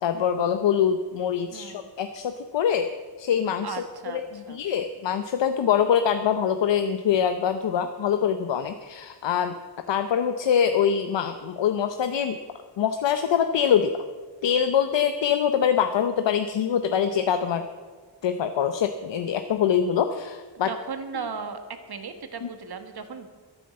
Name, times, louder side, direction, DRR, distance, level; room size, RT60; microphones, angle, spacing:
voice 1, 0.0-2.9 3.2-9.6 9.9-12.4 12.8-14.0 14.4-17.7 18.2-20.7 21.1-21.2 22.4-22.5, left 8 dB, 85° left, 8 dB, 0.8 m, -24 dB
voice 2, 1.5-1.9 3.6-4.2 4.5-4.6 20.6-23.3, right 5 dB, 60° right, 8 dB, 1.5 m, -36 dB
12.5 x 9.1 x 7.6 m, 1.5 s
wide cardioid pair, 85°, 43 cm